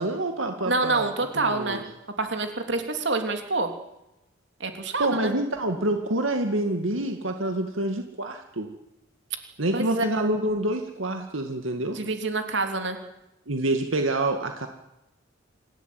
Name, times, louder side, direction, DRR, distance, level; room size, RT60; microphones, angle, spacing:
voice 1, 0.0-1.1 1.4-1.8 5.0-8.7 9.6-12.0 13.5-14.7, right 1 dB, 90° right, 5 dB, 2.2 m, -27 dB
voice 2, 0.7-1.8 2.2-3.7 4.6-5.3 9.7-10.1 11.9-13.0, right 3 dB, 60° right, 6 dB, 3.3 m, -27 dB
26.0 x 16.0 x 9.4 m, 0.90 s
head